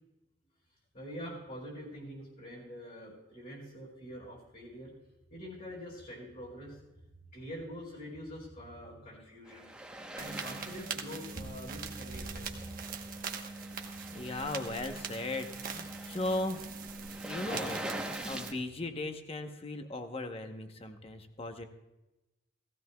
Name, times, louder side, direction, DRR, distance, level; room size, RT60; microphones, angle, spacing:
voice 1, 0.9-4.9 5.3-6.8 7.3-9.6 10.1-12.6, equal, 50° left, -4 dB, 3.8 m, -45 dB
sound 1, 9.5-18.5, right 1 dB, 5° right, 0.9 m, -44 dB
sound 2, 10.2-18.5, right 4 dB, 50° right, 1.1 m, -42 dB
voice 2, 14.1-16.7 17.1-21.6, left 2 dB, 30° left, 6 dB, 0.9 m, -37 dB
17.0 x 15.5 x 2.3 m, 0.98 s
head